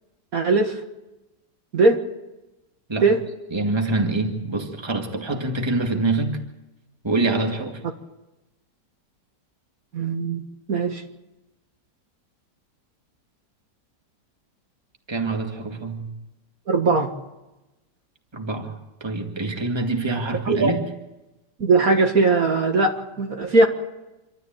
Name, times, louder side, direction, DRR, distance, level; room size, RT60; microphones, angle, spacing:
voice 1, 0.3-0.8 1.7-2.0 3.0-3.2 9.9-10.4 10.7-11.0 16.7-17.1 20.5-20.7 21.6-23.7, right 3 dB, 55° right, 2.1 m, -19 dB
voice 2, 3.5-6.4 7.0-7.8 15.1-16.2 18.3-20.9, right 2 dB, 15° right, 2.0 m, -25 dB
27.0 x 13.0 x 9.0 m
omnidirectional pair, 1.9 m